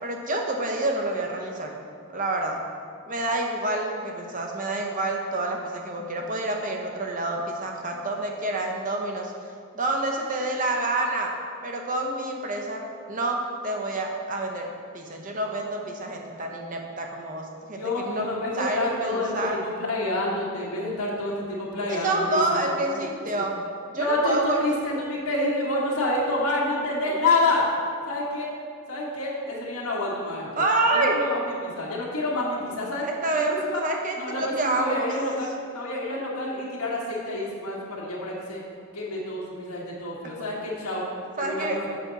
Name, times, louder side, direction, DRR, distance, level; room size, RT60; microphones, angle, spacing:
voice 1, 0.0-1.7 2.1-2.6 3.1-9.3 9.7-11.3 11.6-18.3 18.6-19.6 21.9-23.6 23.9-24.6 30.6-31.2 33.0-35.1 41.4-41.8, right 2 dB, 35° right, 2 dB, 0.7 m, -28 dB
voice 2, 17.7-23.4 24.0-27.6 28.1-28.5 28.9-30.6 30.9-33.1 33.3-33.8 34.2-38.6 38.9-41.0 41.4-42.0, left 2 dB, 85° left, -4 dB, 1.6 m, -28 dB
7.7 x 6.0 x 4.0 m, 2.3 s
head